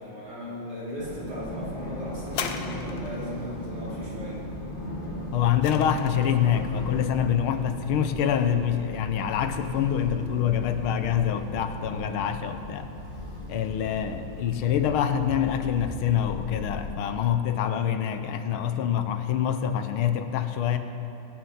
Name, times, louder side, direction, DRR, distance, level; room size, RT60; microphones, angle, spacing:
voice 1, 0.0-4.4, equal, 50° right, -9 dB, 4.8 m, -37 dB
sound 1, 1.0-16.9, left 1 dB, 25° left, 2.4 m, -37 dB
sound 2, 2.3-3.3 5.0-6.4 7.2-7.3, left 7 dB, 70° left, 1.5 m, -36 dB
voice 2, 5.3-12.9 13.5-20.8, left 9 dB, 85° left, 9 dB, 1.6 m, -26 dB
22.5 x 8.7 x 5.7 m, 2.8 s
omnidirectional pair, 2.3 m